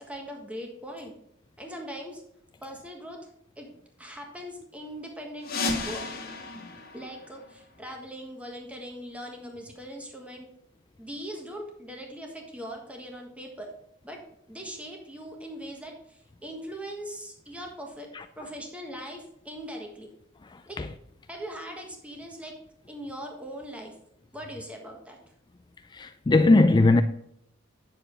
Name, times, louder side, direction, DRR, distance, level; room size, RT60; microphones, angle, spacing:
voice 1, 0.1-1.1 1.6-2.2 2.6-3.3 3.6-3.7 4.0-6.0 6.9-10.5 11.0-13.7 14.0-14.2 14.5-18.1 18.4-20.1 20.6-20.8 21.3-22.5 22.9-23.9 24.3-25.2, equal, 5° right, 1.5 m, -40 dB
sound 1, 5.4-8.0, left 3 dB, 50° left, 1.7 m, -34 dB
voice 2, 20.5-20.9 25.9-27.0, left 2 dB, 20° left, 0.3 m, -20 dB
9.0 x 6.9 x 3.8 m
head